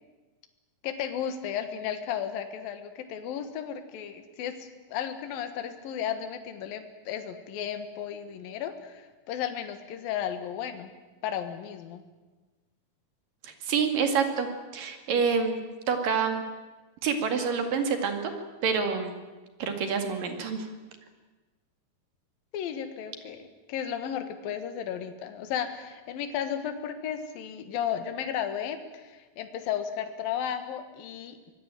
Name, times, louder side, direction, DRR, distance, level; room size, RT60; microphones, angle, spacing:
voice 1, 0.8-10.9 11.2-12.0 22.5-23.4 23.7-31.5, left 9 dB, 75° left, 8 dB, 3.3 m, -34 dB
voice 2, 13.4-14.5 14.7-15.6 15.9-16.4 17.0-18.3 18.6-19.1 19.6-20.7, right 6 dB, 65° right, 6 dB, 3.8 m, -27 dB
24.5 x 19.5 x 9.1 m, 1.2 s
omnidirectional pair, 4.2 m